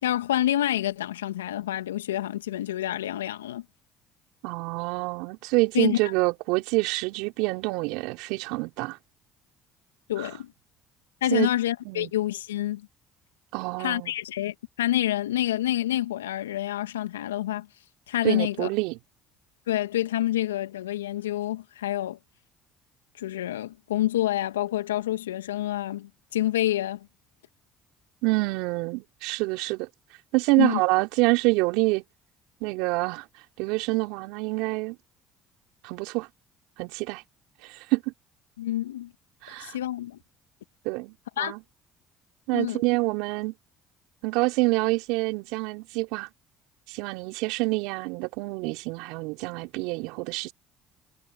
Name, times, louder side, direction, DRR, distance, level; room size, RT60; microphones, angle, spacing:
voice 1, 0.0-3.6 5.7-6.0 10.1-10.5 11.2-12.9 13.8-17.7 18.1-18.7 19.7-22.2 23.2-27.1 30.6-30.8 38.6-39.1 39.5-40.2 41.4-41.5 42.5-42.8, left 13 dB, 85° left, 2.3 m, -27 dB
voice 2, 4.4-9.0 10.2-10.3 11.3-11.5 11.9-12.1 13.5-14.1 18.2-19.0 28.2-29.9 30.3-32.0 32.6-33.2 33.6-35.0 35.8-36.3 36.8-37.2 37.6-38.1 39.4-39.8 40.8-41.6 42.5-43.5 44.2-46.3 46.9-50.5, right 25 dB, 75° right, 4.3 m, -27 dB
hypercardioid pair, 55°, 0 cm